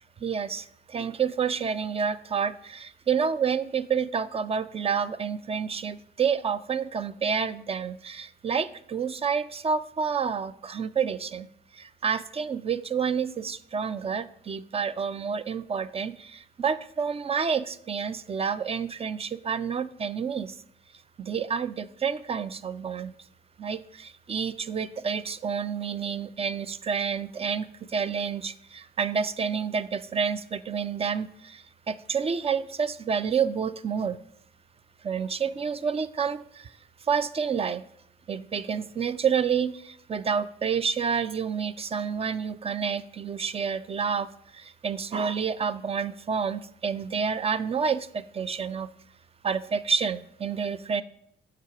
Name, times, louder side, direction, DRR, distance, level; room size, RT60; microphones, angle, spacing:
voice 1, 0.2-11.5 11.7-20.5 21.2-23.1 23.6-34.2 35.0-36.7 37.1-37.8 38.3-44.3 44.5-48.9 49.4-51.0, right 6 dB, 30° right, 16 dB, 0.4 m, -29 dB
7.5 x 4.9 x 4.7 m, 0.70 s
cardioid pair, 90°, 20 cm